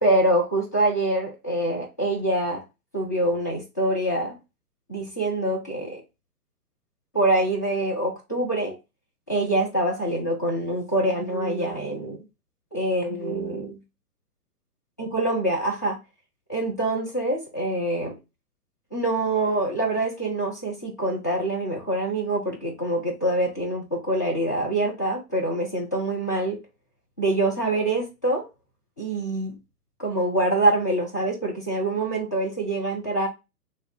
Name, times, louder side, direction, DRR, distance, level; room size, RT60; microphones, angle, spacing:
voice 1, 0.0-2.6 2.9-4.4 4.9-6.0 7.1-8.8 9.3-12.2 12.7-13.8 15.0-16.0 16.5-18.1 18.9-26.6 27.2-28.5 29.0-29.6 30.0-33.3, right 1 dB, 15° left, 0.4 m, -25 dB
3.9 x 3.1 x 4.0 m
figure-of-eight pair, 120°, 47 cm